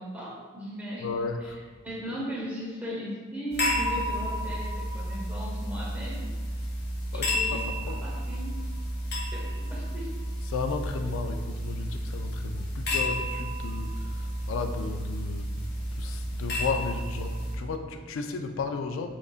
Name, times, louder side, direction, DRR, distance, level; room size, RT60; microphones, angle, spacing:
voice 1, 0.0-1.1 1.8-6.3 7.1-7.7 8.0-8.6 9.3-10.2, equal, 10° right, -6 dB, 0.8 m, -37 dB
voice 2, 1.0-1.7 7.1-8.0 10.5-15.6 15.9-19.2, left 4 dB, 90° left, 6 dB, 0.3 m, -34 dB
sound 1, 3.5-17.6, equal, 55° left, 1.0 m, -31 dB
5.0 x 2.4 x 2.4 m, 1.5 s
head